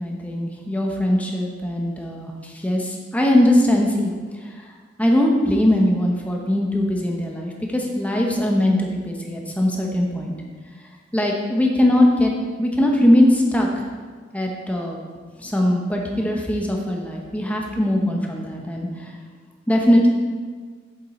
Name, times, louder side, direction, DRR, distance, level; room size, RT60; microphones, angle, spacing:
voice 1, 0.0-4.1 5.0-10.4 11.1-12.3 12.6-13.8 14.3-15.0 15.4-19.1 19.7-20.1, left 1 dB, 10° left, 0 dB, 0.9 m, -20 dB
8.3 x 7.3 x 4.3 m, 1.5 s
head